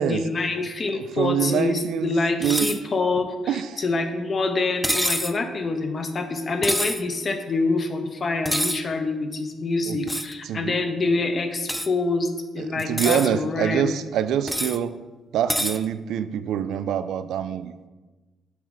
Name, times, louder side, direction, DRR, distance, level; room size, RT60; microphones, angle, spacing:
voice 1, 0.0-14.0, left 3 dB, 40° left, 6 dB, 0.8 m, -26 dB
voice 2, 0.9-2.1 2.4-2.7 3.5-3.7 9.9-10.0 10.5-10.7 12.6-14.9 15.3-17.9, right 9 dB, 80° right, 12 dB, 0.3 m, -25 dB
sound 1, 2.4-2.8 4.8-5.4 6.6-7.0 8.5-8.8 10.1-10.3 11.7-11.9 12.8-13.3 14.5-14.8 15.5-15.8, equal, ahead, 0.3 m, -26 dB
7.1 x 4.8 x 4.0 m, 1.2 s
cardioid pair, 90°, 0 cm